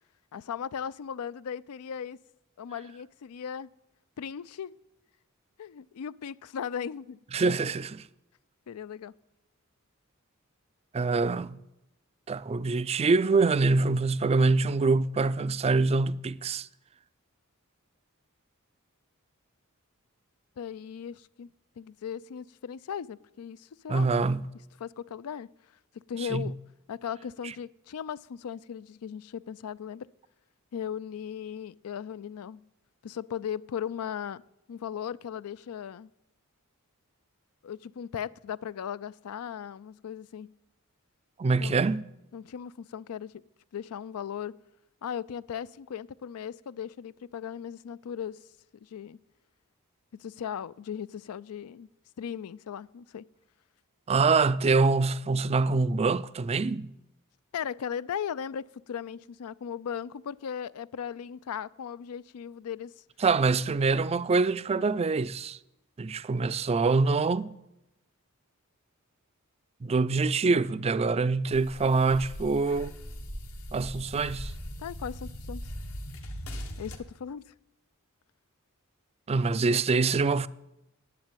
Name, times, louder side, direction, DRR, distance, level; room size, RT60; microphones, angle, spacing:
voice 1, 0.3-2.2 2.6-3.7 4.2-4.7 5.6-7.2 8.7-9.1 20.6-21.5 21.8-24.1 24.8-25.5 26.1-26.5 26.9-30.1 30.7-32.7 33.0-34.4 34.7-36.1 37.6-40.5 41.6-41.7 42.3-43.3 43.7-44.6 45.0-48.4 48.8-49.2 50.1-51.9 52.2-53.3 57.5-62.9 74.8-75.7 76.8-77.5, left 8 dB, 85° left, 0.4 m, -37 dB
voice 2, 7.3-8.0 10.9-11.6 12.3-16.7 23.9-24.4 26.3-26.5 27.4-27.5 41.4-42.0 54.1-56.9 63.2-65.6 66.0-67.5 69.8-72.9 73.7-74.5 79.3-80.5, right 4 dB, 30° right, 0.4 m, -25 dB
sound 1, 71.5-77.0, equal, 70° left, 1.5 m, -40 dB
10.5 x 8.1 x 9.0 m
head